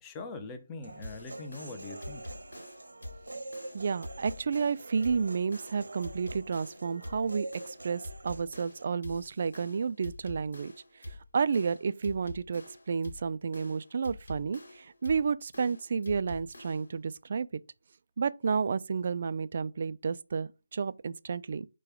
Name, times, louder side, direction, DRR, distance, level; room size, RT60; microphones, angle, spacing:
voice 1, 0.0-2.3, left 3 dB, 10° left, 0.5 m, -42 dB
Human voice, 0.8-8.8, right 2 dB, 85° right, 0.9 m, -45 dB
sound 1, 1.0-17.0, left 1 dB, 70° left, 1.4 m, -46 dB
voice 2, 3.7-10.7 11.0-17.6 18.2-21.7, right 5 dB, 40° right, 0.3 m, -31 dB
4.9 x 2.2 x 4.8 m
figure-of-eight pair, 165°, 0 cm